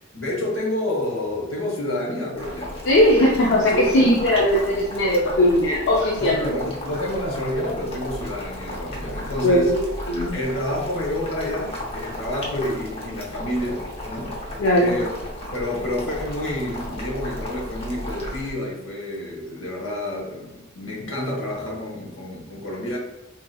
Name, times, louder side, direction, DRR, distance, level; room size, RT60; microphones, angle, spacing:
voice 1, 0.1-2.7 3.7-4.1 5.2-5.4 6.2-9.7 10.3-14.4 14.8-15.1 15.5-23.0, left 1 dB, 80° left, -2 dB, 1.0 m, -29 dB
Boiling, 2.4-18.5, left 1 dB, 30° left, 0.7 m, -34 dB
voice 2, 2.8-6.5 9.4-10.3 14.6-14.9, left 1 dB, 65° left, -3 dB, 0.5 m, -19 dB
3.7 x 2.7 x 2.2 m, 0.96 s
head